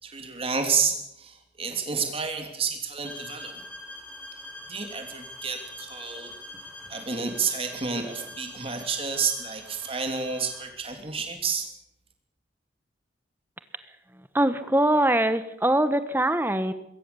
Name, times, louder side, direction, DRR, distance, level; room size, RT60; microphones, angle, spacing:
voice 1, 0.0-3.6 4.7-6.3 6.9-11.7, right 5 dB, 30° right, 5 dB, 3.1 m, -30 dB
sound 1, 3.0-10.8, left 1 dB, 10° left, 5.7 m, -44 dB
voice 2, 14.3-16.7, right 1 dB, 10° right, 12 dB, 1.1 m, -22 dB
22.0 x 17.0 x 7.0 m, 0.80 s
head